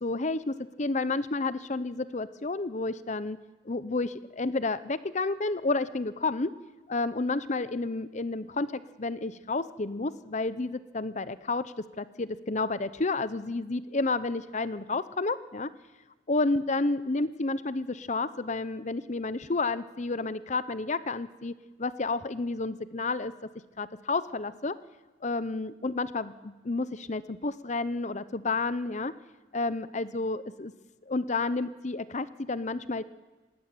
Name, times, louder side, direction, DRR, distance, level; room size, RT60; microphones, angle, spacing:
voice 1, 0.0-3.4 3.6-6.5 6.9-15.7 16.3-21.5 21.8-23.3 23.8-24.8 25.2-29.1 29.5-30.7 31.1-33.0, left 3 dB, 40° left, 15 dB, 0.8 m, -30 dB
19.5 x 18.5 x 9.1 m, 1.2 s
head